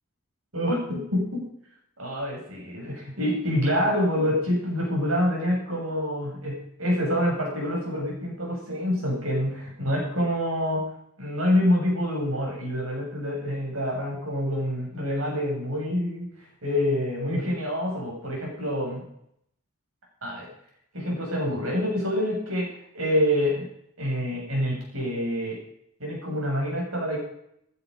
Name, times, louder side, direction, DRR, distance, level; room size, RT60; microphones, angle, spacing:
voice 1, 0.5-1.5 2.0-10.8 11.2-16.3 16.6-19.0 20.2-20.5 20.9-22.7 22.9-23.7 24.0-25.6 26.0-27.2, equal, 80° right, -2 dB, 7.8 m, -26 dB
16.0 x 10.0 x 5.5 m, 0.72 s
head